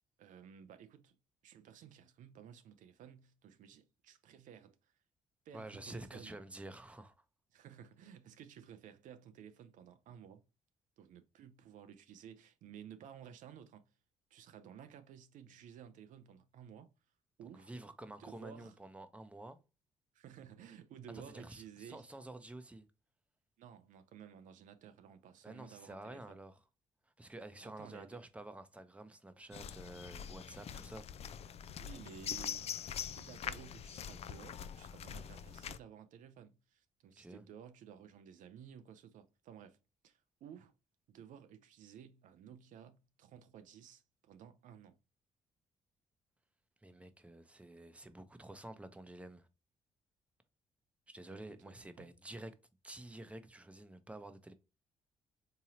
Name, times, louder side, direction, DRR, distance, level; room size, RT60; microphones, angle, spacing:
voice 1, 0.2-1.2 1.4-4.9 5.5-6.4 7.5-10.4 11.0-13.9 14.3-16.9 17.4-17.7 18.2-18.8 20.1-22.1 23.6-26.4 27.6-28.2 31.8-32.7 33.1-39.8 40.0-40.7 41.1-45.0 51.3-52.1, right 8 dB, 65° right, 0.5 m, -55 dB
voice 2, 5.5-7.1 17.5-19.6 21.1-22.9 25.4-26.6 27.2-31.1 37.2-37.4 46.8-49.5 51.1-52.5 52.8-54.5, right 1 dB, 10° right, 0.7 m, -50 dB
sound 1, 29.5-35.8, left 8 dB, 45° left, 0.3 m, -44 dB
3.7 x 2.9 x 2.8 m
hypercardioid pair, 45°, 14 cm